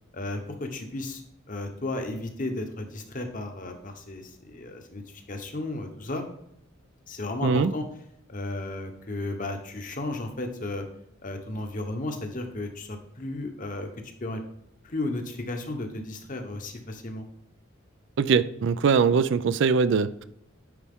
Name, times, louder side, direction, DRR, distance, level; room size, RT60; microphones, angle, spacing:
voice 1, 0.1-1.2 1.5-6.2 7.1-7.8 8.3-10.8 11.2-13.9 14.2-14.4 14.8-17.2, left 2 dB, 40° left, 5 dB, 1.0 m, -34 dB
voice 2, 18.2-20.2, right 5 dB, 60° right, 15 dB, 0.3 m, -22 dB
9.7 x 4.2 x 3.6 m, 0.77 s
head